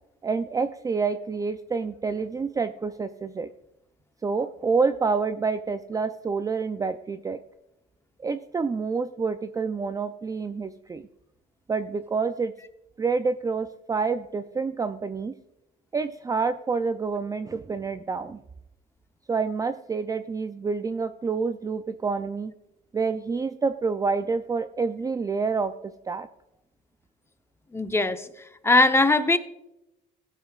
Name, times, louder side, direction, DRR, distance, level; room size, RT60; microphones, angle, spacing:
voice 1, 0.2-3.5 4.2-7.4 8.2-11.1 11.7-12.5 13.0-15.4 15.9-18.4 19.3-22.5 22.9-26.3, right 4 dB, 15° right, 10 dB, 0.4 m, -28 dB
voice 2, 27.7-28.3 28.6-29.4, left 2 dB, 10° left, 9 dB, 0.8 m, -20 dB
16.0 x 9.1 x 2.4 m, 0.88 s
cardioid pair, 110°, 20 cm